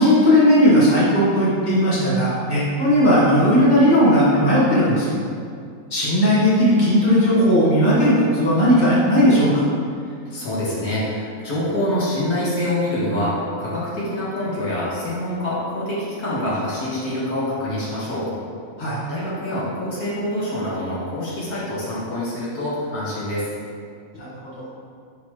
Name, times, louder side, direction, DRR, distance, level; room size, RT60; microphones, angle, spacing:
voice 1, 0.0-5.1 5.9-9.6 18.8-19.0 24.1-24.7, equal, 30° left, -9 dB, 1.8 m, -17 dB
voice 2, 9.9-18.3 19.1-23.5, left 1 dB, 90° left, -8 dB, 2.1 m, -26 dB
9.3 x 4.1 x 3.1 m, 2.3 s
omnidirectional pair, 1.5 m